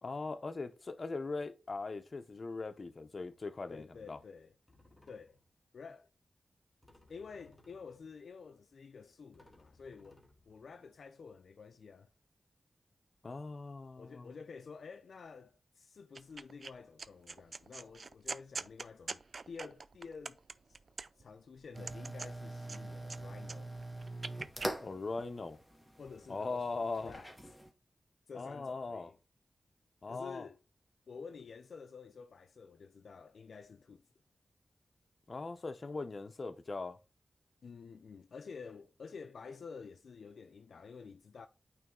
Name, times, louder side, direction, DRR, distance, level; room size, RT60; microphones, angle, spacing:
voice 1, 0.0-4.2 13.2-14.3 24.8-25.6 26.3-27.1 28.3-29.1 30.0-30.5 35.3-37.0, left 3 dB, 50° left, 0.7 m, -40 dB
sound 1, 3.2-3.6 4.4-4.5 4.7-5.6 6.8-8.3 8.9-9.0 9.3-11.2, left 2 dB, 10° left, 1.6 m, -65 dB
voice 2, 3.7-4.6 5.1-5.4 5.7-6.1 7.1-12.1 14.0-20.4 20.7-20.8 21.2-23.7 26.0-26.7 27.0-27.4 28.3-29.2 30.1-30.6 31.1-34.0 37.6-41.5, left 5 dB, 85° left, 0.4 m, -50 dB
sound 2, 16.2-16.7 17.0-21.3 21.7-23.2 23.4-24.7, right 4 dB, 60° right, 0.3 m, -44 dB
sound 3, 21.7-27.7, right 1 dB, 5° right, 1.1 m, -44 dB
8.9 x 3.1 x 3.7 m
wide cardioid pair, 70°, 0 cm